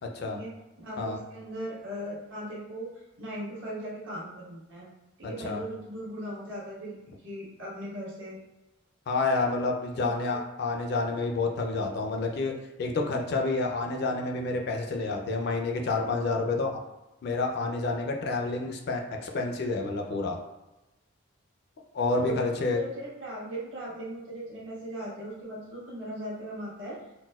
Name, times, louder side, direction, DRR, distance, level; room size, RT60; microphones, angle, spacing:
voice 1, 0.3-4.9 5.2-7.0 7.2-8.4 10.0-10.4 22.1-27.0, right 1 dB, 70° right, -7 dB, 1.2 m, -38 dB
voice 2, 5.2-5.6 9.1-12.5 12.8-16.8 17.2-20.4 21.9-22.8, left 3 dB, 55° left, 2 dB, 0.4 m, -29 dB
4.0 x 2.1 x 2.3 m, 1.0 s
head